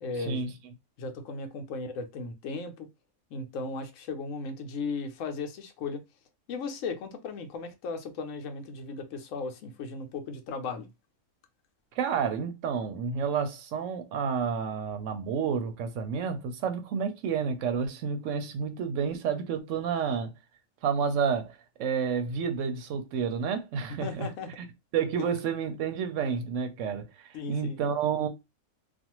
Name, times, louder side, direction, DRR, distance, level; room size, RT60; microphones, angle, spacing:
voice 1, 0.0-0.4 1.0-2.9 3.3-6.0 6.5-10.9 24.0-24.5 25.2-25.3 27.3-27.8, left 4 dB, 70° left, 0.9 m, -36 dB
voice 2, 12.0-20.3 20.8-24.3 24.6-24.7 24.9-28.3, right 6 dB, 70° right, 0.9 m, -30 dB
2.5 x 2.3 x 2.9 m
omnidirectional pair, 1.4 m